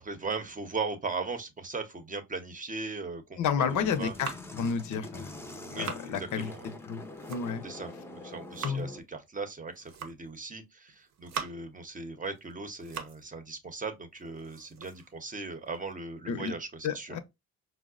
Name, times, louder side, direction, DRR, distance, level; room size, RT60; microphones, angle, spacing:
voice 1, 0.0-4.1 5.7-6.6 7.6-17.2, right 4 dB, 25° right, 0.7 m, -38 dB
voice 2, 3.4-5.4 5.8-7.0 7.3-7.6 8.6-8.9 16.3-16.5 16.8-17.2, left 6 dB, 75° left, 0.6 m, -31 dB
sound 1, 3.6-9.0, left 2 dB, 10° left, 0.5 m, -44 dB
sound 2, 3.9-4.7 5.4-6.1 6.9-7.7 8.2-8.9 9.7-10.4 10.9-11.8 12.3-13.3 13.6-13.7 14.2-15.9, right 6 dB, 65° right, 0.7 m, -43 dB
4.6 x 2.1 x 2.4 m
cardioid pair, 90°, 30 cm